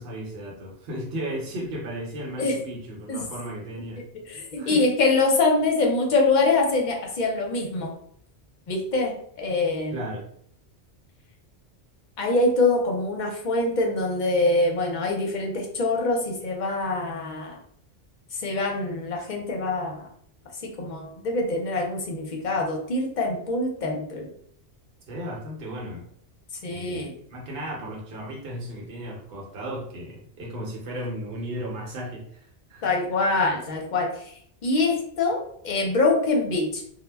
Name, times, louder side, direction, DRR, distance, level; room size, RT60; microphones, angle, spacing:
voice 1, 0.0-4.1 4.6-4.8 9.9-10.3 25.1-26.0 26.7-32.8, equal, 65° right, -3 dB, 0.9 m, -35 dB
voice 2, 4.3-7.9 8.7-10.0 12.2-17.6 18.3-20.1 20.6-24.3 26.6-27.1 32.8-34.3 34.6-36.8, left 3 dB, 55° left, 0 dB, 0.6 m, -24 dB
2.1 x 2.1 x 3.3 m, 0.65 s
omnidirectional pair, 1.1 m